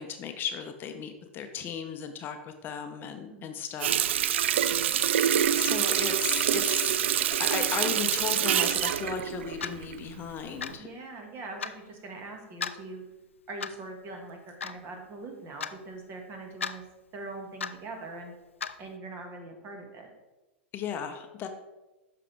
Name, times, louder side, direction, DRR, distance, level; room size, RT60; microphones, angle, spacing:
voice 1, 0.0-4.5 5.5-7.0 7.4-10.9 11.7-11.8 20.7-21.5, left 7 dB, 30° left, 6 dB, 0.7 m, -36 dB
Water tap faucet, 3.8-10.2 10.6-10.7, right 10 dB, 70° right, 0.3 m, -26 dB
Clock, 9.6-9.8 10.6-10.8 11.6-11.8 12.6-12.8 13.6-13.9 14.6-14.8 15.6-15.8 16.6-16.8 17.6-17.8 18.6-18.8, left 6 dB, 85° left, 0.4 m, -34 dB
voice 2, 10.8-13.0 13.5-16.8 17.1-18.3 18.8-20.1, right 2 dB, 35° right, 3 dB, 1.8 m, -42 dB
8.4 x 5.9 x 3.4 m, 1.1 s
hypercardioid pair, 100°, 7 cm